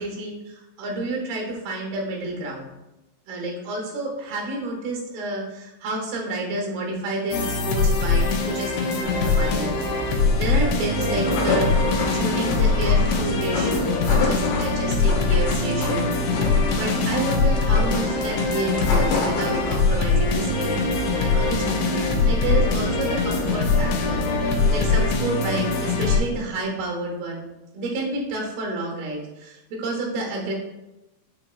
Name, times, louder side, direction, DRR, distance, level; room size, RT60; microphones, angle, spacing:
voice 1, 0.0-2.7 3.3-11.9 12.1-20.8 21.2-24.3 24.7-30.5, right 2 dB, 85° right, 0 dB, 2.9 m, -30 dB
sound 1, 7.3-26.2, left 4 dB, 85° left, 2.4 m, -22 dB
Engine, 9.0-24.9, right 4 dB, 65° right, 2.5 m, -34 dB
sound 2, 10.9-20.0, left 4 dB, 70° left, 2.2 m, -29 dB
6.3 x 2.9 x 2.3 m, 0.98 s
omnidirectional pair, 4.2 m